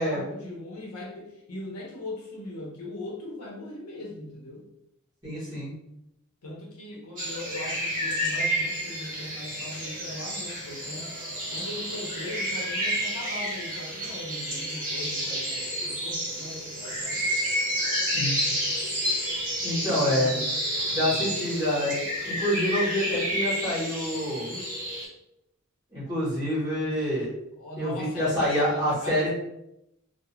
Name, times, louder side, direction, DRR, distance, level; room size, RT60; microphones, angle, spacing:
voice 1, 0.0-4.7 6.4-11.1 11.5-17.2 19.8-20.5 20.9-21.3 24.5-24.7 27.6-29.3, left 1 dB, 90° left, -2 dB, 0.8 m, -39 dB
voice 2, 5.2-5.7 18.1-18.7 19.6-20.3 20.9-24.5 25.9-27.3 27.8-29.3, equal, 15° right, -10 dB, 1.1 m, -27 dB
sound 1, 7.2-25.1, equal, 35° right, 0.8 m, -30 dB
2.4 x 2.1 x 3.0 m, 0.82 s
head